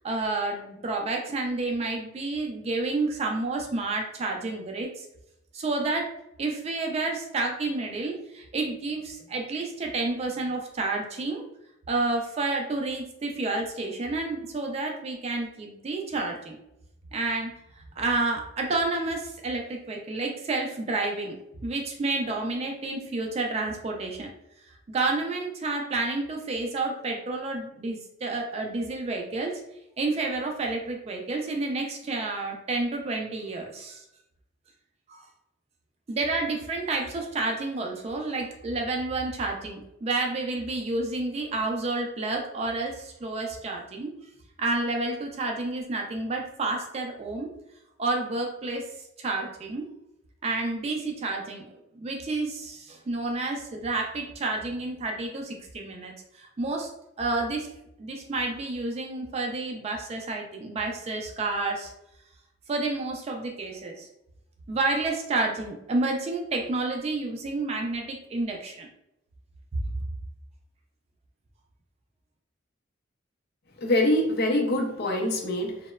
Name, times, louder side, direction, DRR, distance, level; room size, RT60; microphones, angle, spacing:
voice 1, 0.0-5.1 5.5-6.1 6.4-11.5 11.9-16.6 17.1-17.5 17.8-21.4 21.6-24.3 24.9-29.6 30.0-34.0 35.1-35.2 36.1-44.1 44.6-47.5 48.0-48.9 49.2-49.9 50.4-51.7 52.0-56.9 57.2-57.7 58.0-61.9 62.7-64.1 64.7-68.9, right 3 dB, 30° right, 2 dB, 0.3 m, -30 dB
voice 2, 73.8-75.9, left 1 dB, 55° left, 1 dB, 0.5 m, -24 dB
2.8 x 2.1 x 2.2 m, 0.83 s
head